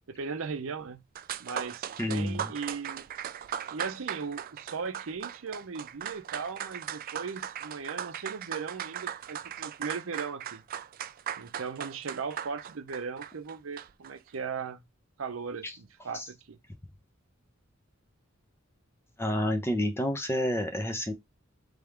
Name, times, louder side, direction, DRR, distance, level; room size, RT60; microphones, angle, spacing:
voice 1, 0.1-1.0 1.4-3.1 3.7-10.6 11.4-14.8 15.2-16.6, right 5 dB, 80° right, 0.6 m, -38 dB
sound 1, 0.9-1.0 1.2-14.1, right 9 dB, 45° right, 0.3 m, -38 dB
voice 2, 2.0-2.5 15.6-15.7 16.1-16.2 19.2-21.1, left 1 dB, 10° left, 0.7 m, -29 dB
3.6 x 3.5 x 3.3 m
head